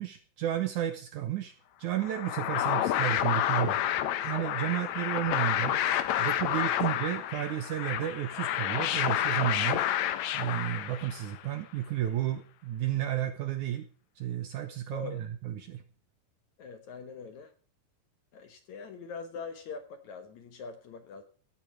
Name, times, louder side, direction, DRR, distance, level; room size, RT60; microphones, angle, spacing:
voice 1, 0.0-1.5 1.8-3.8 4.2-5.8 6.2-9.8 10.3-13.9 14.2-15.8, right 12 dB, 70° right, 9 dB, 2.0 m, -32 dB
reverb reverse scratch, 2.0-11.4, left 12 dB, 80° left, 1.6 m, -29 dB
voice 2, 4.0-4.7 6.5-6.7 10.1-10.2 14.9-15.2 16.6-17.5 18.3-21.2, left 5 dB, 60° left, 8 dB, 2.2 m, -43 dB
16.5 x 8.1 x 6.5 m, 0.40 s
omnidirectional pair, 4.5 m